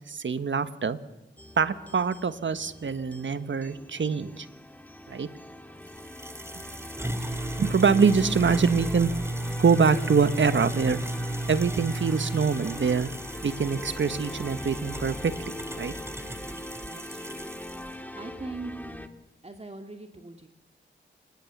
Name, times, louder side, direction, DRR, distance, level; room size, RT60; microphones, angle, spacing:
voice 1, 0.1-1.0 1.6-4.5 5.1-5.3 7.6-9.1 9.6-11.0 11.5-13.1 13.4-15.3 15.8-15.9, right 5 dB, 70° right, 12 dB, 1.3 m, -24 dB
sound 1, 1.4-19.1, left 1 dB, 10° left, 2.4 m, -41 dB
sound 2, 5.9-17.9, right 1 dB, 15° right, 2.2 m, -35 dB
voice 2, 7.0-7.5 16.8-17.5 18.2-18.7 19.4-20.5, right 2 dB, 30° right, 5 dB, 2.1 m, -42 dB
sound 3, 7.2-16.4, left 1 dB, 75° left, 7.3 m, -45 dB
26.0 x 20.5 x 7.3 m, 0.97 s
cardioid pair, 40°, 20 cm